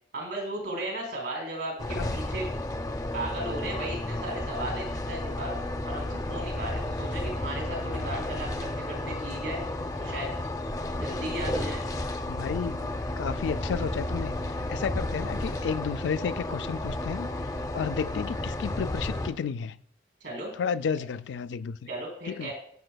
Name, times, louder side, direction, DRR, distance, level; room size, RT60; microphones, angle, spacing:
voice 1, 0.1-2.5 3.1-5.6 5.8-9.6 10.0-10.3 10.9-11.8 20.2-20.5 21.9-22.5, right 1 dB, 85° right, 3.5 m, -35 dB
sound 1, 1.8-19.3, left 1 dB, 20° left, 0.5 m, -32 dB
voice 2, 12.3-17.5 17.7-19.8 20.5-21.8 22.3-22.5, left 6 dB, 85° left, 0.3 m, -32 dB
14.0 x 6.7 x 2.3 m
head